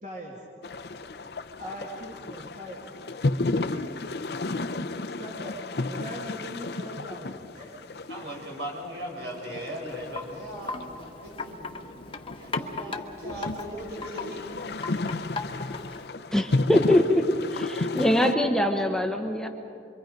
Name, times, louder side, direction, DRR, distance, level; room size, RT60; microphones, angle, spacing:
voice 1, 0.0-0.4 1.6-2.8 3.5-3.9 4.5-4.7 5.2-5.6 5.9-8.1, equal, 40° right, -2 dB, 2.3 m, -41 dB
sound 1, 0.6-18.3, left 2 dB, 65° left, 0.7 m, -33 dB
voice 2, 8.1-11.7 12.4-14.4, equal, 70° right, -1 dB, 6.3 m, -38 dB
Wind chime, 9.9-16.1, left 3 dB, 30° left, 1.0 m, -38 dB
voice 3, 16.3-17.2 17.5-19.5, left 1 dB, 5° left, 3 dB, 0.8 m, -23 dB
27.0 x 23.5 x 5.2 m, 2.6 s
head